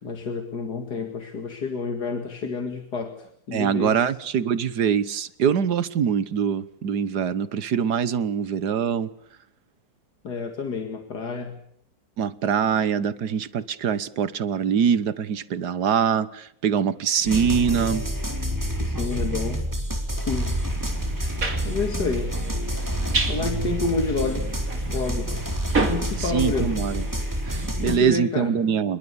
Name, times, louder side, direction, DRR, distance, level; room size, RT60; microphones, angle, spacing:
voice 1, 0.0-4.1 10.2-11.6 18.8-19.7 20.3-20.6 21.6-22.4 23.3-24.5 24.9-25.4 25.9-26.7 27.8-28.5, left 4 dB, 75° left, 2.7 m, -29 dB
voice 2, 3.5-9.1 12.2-18.1 26.2-27.1 27.4-29.0, right 7 dB, 75° right, 1.7 m, -24 dB
sound 1, 17.2-28.0, right 1 dB, 10° right, 3.7 m, -28 dB
sound 2, 20.7-27.7, right 3 dB, 55° right, 3.3 m, -32 dB
27.0 x 22.0 x 7.0 m
omnidirectional pair, 1.7 m